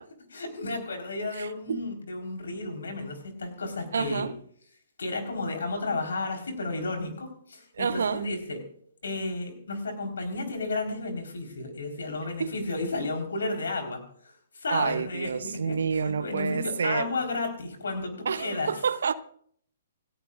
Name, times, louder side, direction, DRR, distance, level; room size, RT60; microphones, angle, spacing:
voice 1, 0.3-4.3 5.0-8.6 9.0-14.0 14.5-18.7, left 2 dB, 65° left, 4.2 m, -32 dB
voice 2, 1.4-1.8 3.9-4.3 7.8-8.3 12.4-12.5 14.7-17.1 18.2-19.1, right 6 dB, 60° right, 0.8 m, -28 dB
28.5 x 14.5 x 2.5 m
figure-of-eight pair, 120°, 0 cm